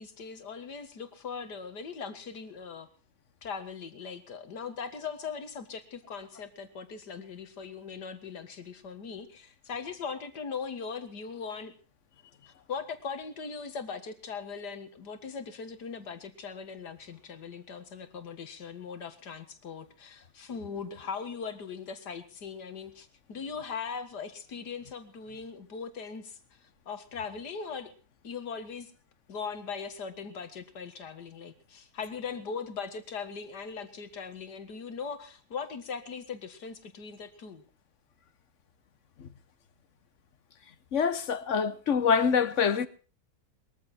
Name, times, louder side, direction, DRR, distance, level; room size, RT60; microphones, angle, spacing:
voice 1, 0.0-2.9 3.4-11.7 12.7-26.4 26.9-27.9 28.2-28.9 29.3-37.6, left 5 dB, 70° left, 2.3 m, -40 dB
voice 2, 40.9-42.9, left 6 dB, 50° left, 1.1 m, -25 dB
21.5 x 14.0 x 4.3 m
omnidirectional pair, 1.9 m